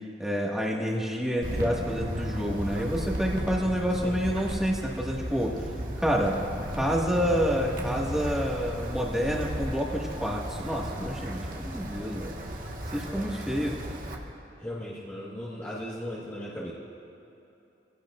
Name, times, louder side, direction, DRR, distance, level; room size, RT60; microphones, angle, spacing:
voice 1, 0.2-5.6 6.0-6.4 6.7-12.3 12.9-13.8, equal, 5° right, -3 dB, 1.9 m, -28 dB
Wind, 1.4-14.1, equal, 50° right, 1.6 m, -35 dB
voice 2, 14.6-16.7, equal, 15° left, -8 dB, 1.6 m, -37 dB
26.0 x 17.0 x 2.6 m, 2.9 s
head